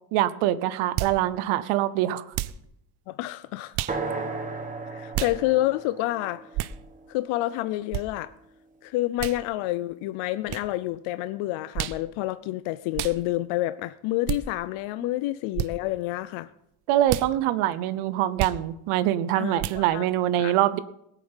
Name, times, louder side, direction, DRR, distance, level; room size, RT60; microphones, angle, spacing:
voice 1, 0.1-2.2 16.9-20.8, right 13 dB, 85° right, 14 dB, 0.9 m, -24 dB
sound 1, 1.0-1.2 2.3-2.6 3.7-4.0 5.1-5.4 6.5-6.8 7.9-8.1 9.2-9.4 10.5-10.7 11.7-12.0 12.9-13.2 14.3-14.4 15.5-15.7 17.1-17.3 18.4-18.6 19.6-19.8, right 14 dB, 50° right, 0.6 m, -30 dB
voice 2, 3.1-3.8 4.1-4.3 4.9-6.4 7.1-8.3 8.8-16.5 19.4-20.0 20.4-20.5, left 16 dB, 75° left, 14 dB, 0.6 m, -28 dB
sound 2, 3.9-7.8, right 3 dB, 15° right, 1.3 m, -35 dB
18.5 x 8.4 x 5.6 m, 0.81 s
cardioid pair, 175°, 49 cm